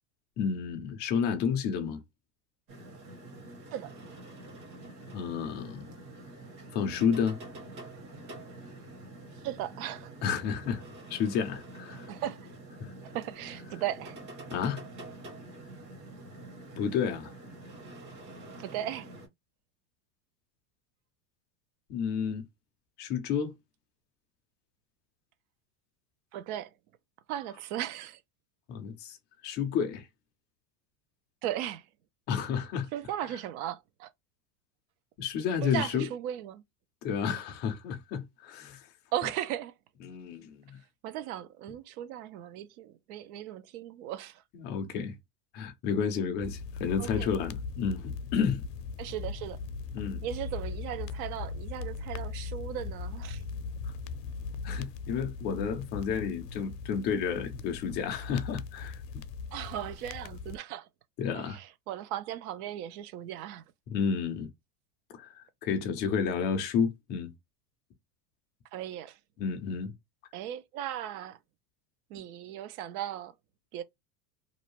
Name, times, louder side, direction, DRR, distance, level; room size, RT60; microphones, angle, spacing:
voice 1, 0.4-2.0 5.1-5.9 6.7-7.4 10.2-10.8 11.1-12.1 12.8-12.9 14.5-14.8 16.8-17.3 21.9-22.4 23.0-23.5 28.7-29.2 29.4-30.1 32.3-32.9 35.2-36.1 37.0-38.9 40.0-40.8 44.5-45.1 45.5-48.6 49.9-50.2 54.6-59.2 61.2-61.6 63.9-64.5 65.2-65.3 65.6-67.3 69.4-69.9, left 7 dB, 25° left, 0.3 m, -31 dB
sound 1, 2.7-19.3, right 2 dB, 40° right, 1.2 m, -47 dB
voice 2, 9.3-10.1 11.9-12.5 13.0-14.2 18.6-19.1 26.3-26.7 27.3-28.2 31.4-31.9 32.9-34.1 35.6-36.6 39.1-39.7 41.0-44.4 47.0-47.3 49.0-49.6 50.2-53.4 59.5-60.9 61.3-63.6 68.7-69.2 70.3-71.4 72.1-73.3 73.7-73.8, right 12 dB, 65° right, 0.6 m, -37 dB
sound 2, 46.4-60.6, left 4 dB, 80° left, 0.6 m, -39 dB
2.6 x 2.1 x 2.9 m
supercardioid pair, 145°, 47 cm